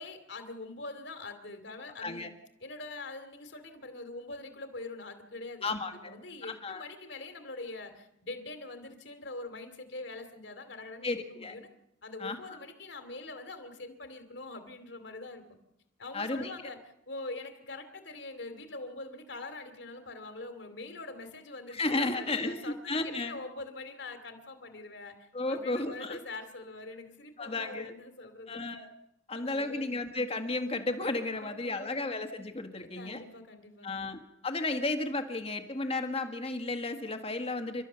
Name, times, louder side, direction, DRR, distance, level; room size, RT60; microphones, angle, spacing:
voice 1, 0.0-2.3 2.6-11.7 12.0-15.4 16.0-16.8 17.1-28.7 29.3-30.0 31.3-32.1 32.8-34.1, left 2 dB, 60° left, 8 dB, 2.7 m, -44 dB
voice 2, 2.0-2.3 5.6-6.2 6.4-6.8 11.0-11.6 12.2-12.6 16.1-16.6 21.7-23.4 25.3-26.2 27.4-27.9 28.5-28.9 29.3-33.2 33.8-37.8, left 2 dB, 30° left, 7 dB, 1.7 m, -33 dB
29.5 x 13.0 x 6.9 m, 0.83 s
head